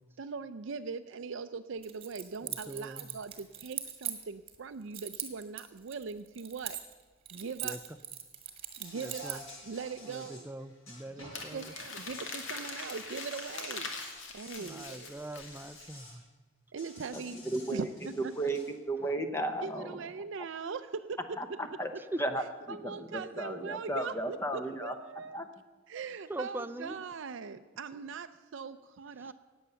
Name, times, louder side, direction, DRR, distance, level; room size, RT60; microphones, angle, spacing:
voice 1, 0.2-6.8 7.3-7.8 8.8-10.5 11.2-13.9 14.3-15.1 16.7-17.4 17.7-18.3 19.6-21.4 22.7-25.4 25.9-29.3, right 5 dB, 70° right, 10 dB, 0.5 m, -41 dB
Keys jangling, 1.8-4.6 4.9-7.0 7.3-9.5, right 9 dB, 30° right, 1.5 m, -40 dB
voice 2, 2.4-3.2 7.6-7.8 8.9-9.4 10.1-11.7 14.6-16.2 19.0-19.2 22.0-22.2 26.0-27.0 29.2-29.3, right 1 dB, 10° right, 12 dB, 0.4 m, -42 dB
Insect, 8.8-11.5 11.9-16.2 16.8-18.7, left 2 dB, 85° left, 6.3 m, -51 dB
Crumpling crinkling, 11.3-15.9, left 4 dB, 65° left, 2.1 m, -42 dB
voice 3, 17.5-17.9 18.4-18.6 18.9-20.0 21.4-21.9 22.2-24.9 25.3-25.5, right 1 dB, 15° left, 7 dB, 0.8 m, -34 dB
18.5 x 8.0 x 6.9 m, 1.3 s
head